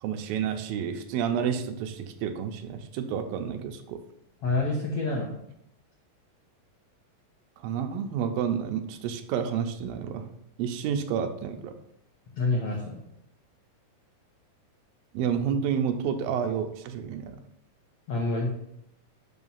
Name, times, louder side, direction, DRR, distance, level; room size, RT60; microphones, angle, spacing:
voice 1, 0.0-4.0 7.6-10.3 10.6-11.7 15.1-17.4, right 8 dB, 90° right, 7 dB, 2.5 m, -30 dB
voice 2, 4.4-5.4 12.3-13.0 18.1-18.5, left 2 dB, 75° left, -2 dB, 1.4 m, -27 dB
6.1 x 5.6 x 5.5 m, 0.77 s
omnidirectional pair, 4.1 m